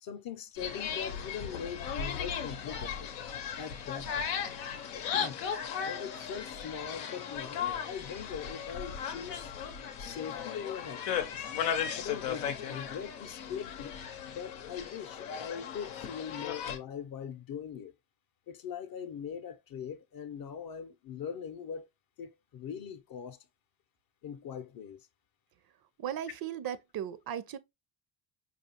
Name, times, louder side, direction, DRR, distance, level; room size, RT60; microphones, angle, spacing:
voice 1, 0.0-3.1 3.6-4.3 4.9-5.4 5.9-9.5 10.0-11.5 11.9-14.0 14.3-17.9 18.5-21.9 22.2-23.4 24.2-25.1, left 7 dB, 45° left, 0.6 m, -41 dB
sound 1, 0.6-16.8, left 8 dB, 90° left, 0.7 m, -36 dB
voice 2, 26.0-27.6, right 10 dB, 50° right, 0.6 m, -37 dB
4.7 x 2.4 x 2.8 m
supercardioid pair, 65°, 49 cm